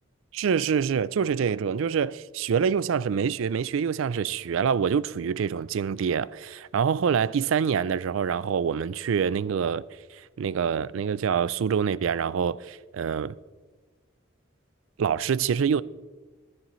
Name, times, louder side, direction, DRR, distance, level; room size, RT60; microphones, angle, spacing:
voice 1, 0.3-9.8 10.4-13.3 15.0-15.8, right 7 dB, 70° right, 0.4 m, -26 dB
20.5 x 10.0 x 3.1 m
head